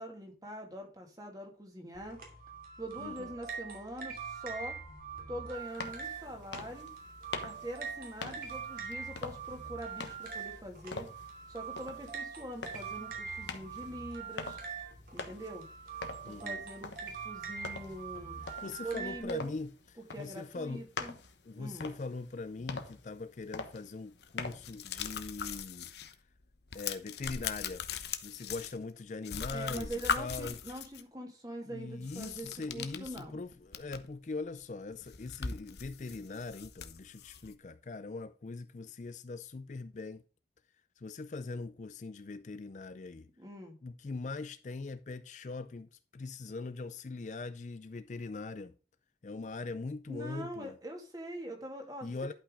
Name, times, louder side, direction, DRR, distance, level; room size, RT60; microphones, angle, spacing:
voice 1, 0.0-2.2 2.8-4.8 5.3-6.9 7.4-11.1 11.5-14.6 15.1-15.7 16.2-19.5 20.1-21.1 21.6-21.9 29.5-32.5 32.7-33.4 43.4-43.8 50.1-52.2, right 1 dB, 20° right, 2.2 m, -43 dB
sound 1, 1.9-19.2, right 6 dB, 50° right, 2.7 m, -43 dB
voice 2, 3.0-3.3 16.2-16.6 18.6-20.9 21.4-25.9 26.7-27.9 28.2-30.6 31.6-40.2 41.0-43.3 43.8-48.7 49.2-50.8 52.0-52.3, left 3 dB, 40° left, 0.4 m, -41 dB
sound 2, 5.6-24.7, left 4 dB, 90° left, 1.3 m, -46 dB
sound 3, 24.2-26.1 26.4-29.0 29.2-31.0 32.0-34.1 34.5-34.6 34.9-37.5, left 6 dB, 70° left, 0.9 m, -40 dB
11.5 x 5.6 x 3.7 m
head